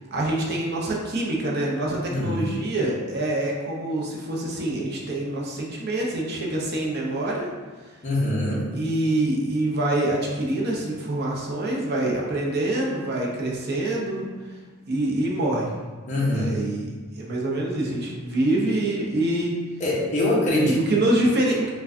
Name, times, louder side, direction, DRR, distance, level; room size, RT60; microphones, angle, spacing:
voice 1, 0.1-7.5 8.7-14.2 14.9-15.7 16.3-16.9 17.2-19.6 20.5-21.7, right 1 dB, 50° right, -3 dB, 0.6 m, -25 dB
voice 2, 2.1-2.4 8.0-8.7 16.1-16.6 19.8-20.8, left 1 dB, 35° left, -5 dB, 0.8 m, -24 dB
4.7 x 2.3 x 2.5 m, 1.4 s
head